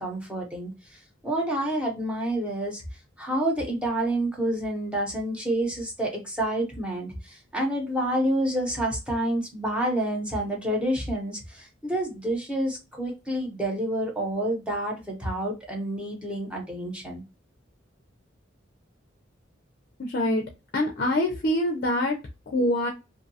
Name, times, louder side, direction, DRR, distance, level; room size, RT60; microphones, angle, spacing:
voice 1, 0.0-2.8 3.2-17.2, right 1 dB, 5° right, 0.8 m, -28 dB
voice 2, 20.0-20.4 20.7-22.2 22.5-22.9, left 1 dB, 50° left, 0.5 m, -24 dB
2.6 x 2.2 x 2.7 m
head